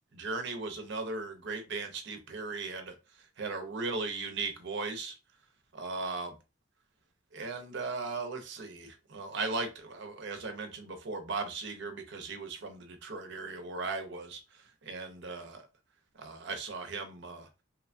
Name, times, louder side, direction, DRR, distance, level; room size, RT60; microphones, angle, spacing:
voice 1, 0.1-3.0 3.4-5.1 5.7-6.3 7.3-15.7 16.1-17.5, right 3 dB, 60° right, 0.6 m, -37 dB
3.0 x 2.2 x 2.5 m
head